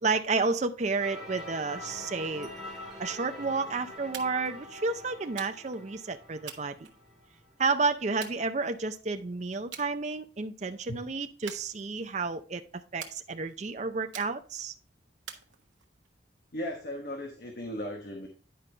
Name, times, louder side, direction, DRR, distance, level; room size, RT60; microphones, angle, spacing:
voice 1, 0.0-2.5 3.0-6.9 7.6-12.6 12.9-14.7, right 4 dB, 40° right, 7 dB, 0.5 m, -31 dB
sound 1, 1.0-7.8, left 1 dB, ahead, 2.3 m, -44 dB
sound 2, 4.1-4.5 5.4-5.8 6.5-7.4 8.2-9.0 9.7-9.9 10.3-10.7 11.5-12.2 13.0-13.6 14.1-14.7 15.3-16.1, right 8 dB, 90° right, 1.1 m, -46 dB
voice 2, 16.5-18.3, left 1 dB, 50° left, 2 dB, 1.1 m, -36 dB
10.0 x 5.3 x 3.3 m, 0.37 s
head